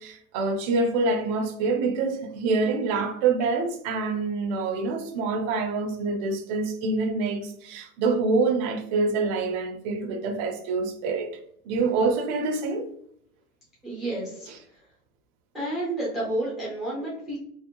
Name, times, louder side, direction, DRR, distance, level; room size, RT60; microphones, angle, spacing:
voice 1, 0.0-11.3 11.7-12.9, right 3 dB, 45° right, 0.6 m, -26 dB
voice 2, 13.8-14.8 15.5-17.4, right 1 dB, ahead, 0.5 m, -31 dB
2.6 x 2.0 x 2.8 m
hypercardioid pair, 105°, 44 cm